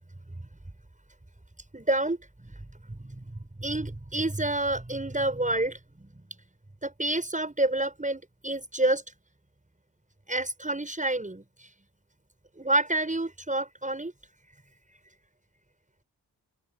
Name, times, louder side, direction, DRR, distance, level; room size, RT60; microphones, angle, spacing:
voice 1, 1.7-2.2 2.9-3.3 3.6-6.1 6.8-9.0 10.3-11.4 12.6-14.1, right 2 dB, 20° right, 7.8 m, -28 dB
cardioid pair, 55°, 40 cm